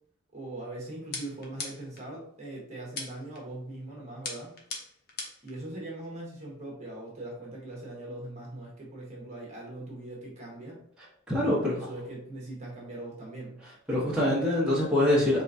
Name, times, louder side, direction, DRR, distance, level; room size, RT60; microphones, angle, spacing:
voice 1, 0.3-4.5 5.4-10.8 11.4-13.6 14.1-14.5, right 1 dB, 30° right, -3 dB, 1.2 m, -41 dB
sound 1, 1.1-2.0 3.0-3.4 4.2-5.5, left 3 dB, 45° left, 0.8 m, -38 dB
voice 2, 11.3-11.7 13.9-15.4, left 1 dB, 5° right, -9 dB, 1.1 m, -24 dB
4.8 x 3.4 x 2.7 m, 0.66 s
head